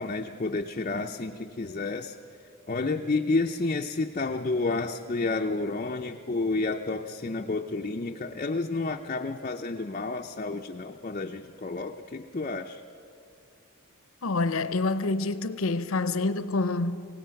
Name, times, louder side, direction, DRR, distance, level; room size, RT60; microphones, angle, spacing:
voice 1, 0.0-2.2 2.7-12.8, left 3 dB, 35° left, 0.5 m, -30 dB
voice 2, 14.2-17.1, left 3 dB, 80° left, 0.8 m, -27 dB
27.0 x 17.0 x 5.8 m
head